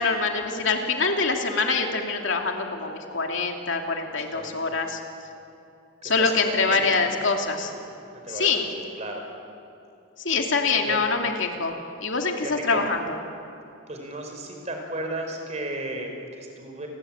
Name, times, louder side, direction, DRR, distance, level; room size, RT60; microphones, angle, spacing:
voice 1, 0.0-5.0 6.0-7.7 8.3-8.7 10.2-11.7 12.0-13.2, left 4 dB, 65° left, 3 dB, 2.7 m, -25 dB
voice 2, 4.1-4.8 6.0-6.9 7.6-7.7 8.1-8.7 9.0-9.2 10.9-11.0 12.4-12.8 13.9-16.9, right 2 dB, 30° right, 3 dB, 4.8 m, -34 dB
29.5 x 21.0 x 8.8 m, 2.8 s
head